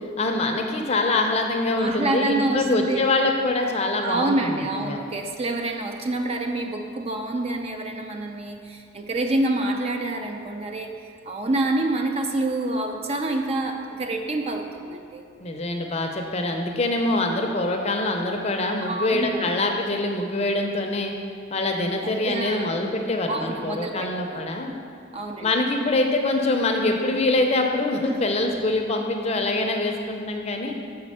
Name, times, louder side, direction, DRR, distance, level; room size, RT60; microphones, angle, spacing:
voice 1, 0.2-5.0 15.4-21.1 21.5-24.7 25.4-30.8, left 2 dB, 30° left, 2 dB, 0.5 m, -24 dB
voice 2, 1.8-3.1 4.0-11.0 11.2-15.2 18.8-19.5 22.2-22.7 23.3-24.4 25.1-25.5 28.0-28.2 28.5-28.6, right 2 dB, 30° right, 4 dB, 0.4 m, -27 dB
5.8 x 4.3 x 6.3 m, 2.4 s
head